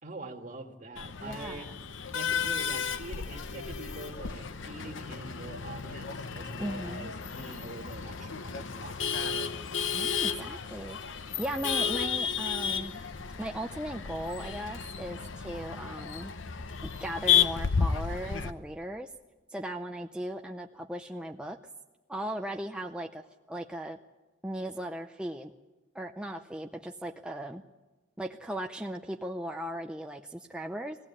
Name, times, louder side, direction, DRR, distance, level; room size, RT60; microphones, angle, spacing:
voice 1, 0.0-1.7 2.1-9.5, right 2 dB, 40° right, 3 dB, 2.0 m, -44 dB
Male speech man speaking / Laughter / Chatter, 1.0-18.5, left 7 dB, 80° left, 0.8 m, -32 dB
voice 2, 1.2-1.8 6.6-7.1 9.9-13.0 13.4-16.3 16.8-19.1 19.5-21.6 22.1-24.0 24.4-25.5 25.9-27.6 28.2-31.0, right 1 dB, 5° right, 3 dB, 0.6 m, -37 dB
21.0 x 16.0 x 8.4 m, 1.2 s
head